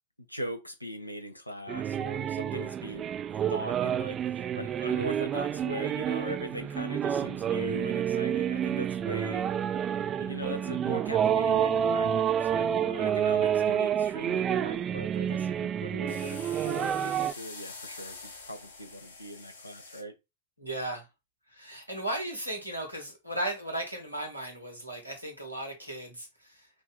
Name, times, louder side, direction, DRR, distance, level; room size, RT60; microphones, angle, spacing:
voice 1, 0.3-3.0 3.5-9.5 10.2-20.1, equal, 90° left, 0.8 m, -40 dB
sound 1, 1.7-17.3, right 9 dB, 30° right, 0.3 m, -29 dB
sound 2, 16.1-20.0, left 3 dB, 70° left, 1.2 m, -46 dB
voice 2, 20.6-21.1 21.5-26.7, right 1 dB, 90° right, 1.5 m, -36 dB
4.8 x 2.7 x 3.8 m
figure-of-eight pair, 90°, 0 cm